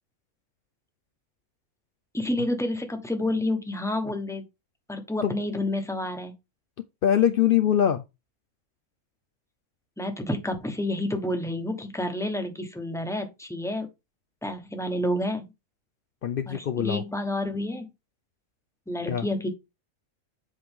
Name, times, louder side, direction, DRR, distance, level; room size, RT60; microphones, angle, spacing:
voice 1, 2.1-4.4 4.9-6.3 10.0-13.9 14.4-15.5 16.5-17.8 18.9-19.5, left 1 dB, ahead, 1.1 m, -29 dB
voice 2, 7.0-8.0 16.2-17.0 19.1-19.3, left 10 dB, 70° left, 0.5 m, -23 dB
7.8 x 4.8 x 3.6 m
omnidirectional pair, 1.6 m